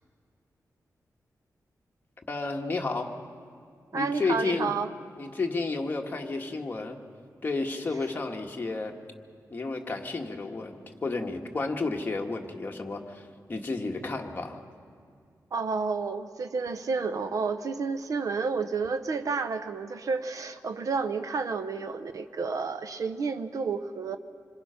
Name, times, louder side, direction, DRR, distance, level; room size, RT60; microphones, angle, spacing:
voice 1, 2.3-3.2 3.9-4.7 5.2-7.0 7.4-8.9 9.5-13.2 13.5-14.6, left 3 dB, 30° left, 1 dB, 1.5 m, -31 dB
voice 2, 3.9-4.9 15.5-24.2, right 4 dB, 60° right, 11 dB, 0.7 m, -30 dB
26.0 x 22.0 x 5.7 m, 2.3 s
wide cardioid pair, 165°, 6 cm